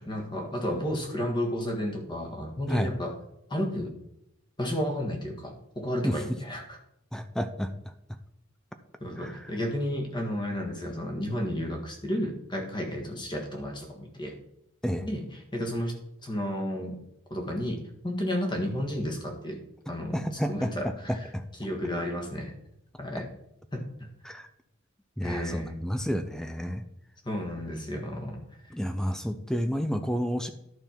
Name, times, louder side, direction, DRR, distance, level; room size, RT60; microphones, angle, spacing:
voice 1, 0.0-3.1 3.5-3.9 4.6-6.8 9.0-14.3 15.0-15.2 15.5-15.9 16.2-17.0 17.3-19.6 19.9-21.2 21.6-22.5 23.0-23.3 23.7-24.1 25.2-25.8 27.2-28.4, equal, 20° left, 2 dB, 1.6 m, -32 dB
voice 2, 7.1-7.9 9.2-9.4 14.8-15.1 20.1-20.7 21.1-21.4 24.2-24.5 25.2-26.8 28.7-30.5, equal, 5° left, 9 dB, 0.4 m, -30 dB
11.5 x 5.4 x 4.5 m, 0.79 s
head